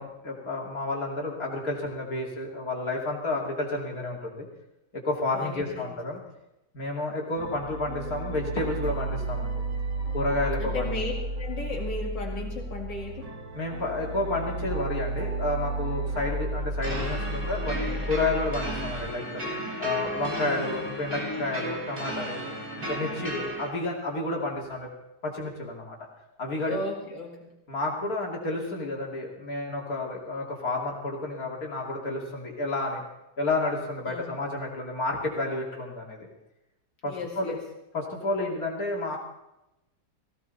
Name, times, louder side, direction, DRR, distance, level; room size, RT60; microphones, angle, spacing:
voice 1, 0.0-4.4 4.9-6.2 6.7-9.6 10.1-10.9 13.5-19.4 19.8-22.4 22.8-24.9 25.2-26.0 26.4-26.8 27.7-33.0 33.4-36.3 37.0-37.6 37.9-39.2, left 2 dB, 55° left, -1 dB, 3.3 m, -30 dB
voice 2, 5.3-5.9 10.6-11.1 11.4-13.3 26.6-27.5 34.1-34.4 37.0-37.6, left 2 dB, 85° left, -1 dB, 3.0 m, -35 dB
sound 1, 7.4-19.1, right 2 dB, 85° right, 2.5 m, -33 dB
sound 2, 16.8-23.7, equal, 30° right, 3.0 m, -34 dB
17.0 x 16.5 x 4.2 m, 0.91 s
omnidirectional pair, 1.8 m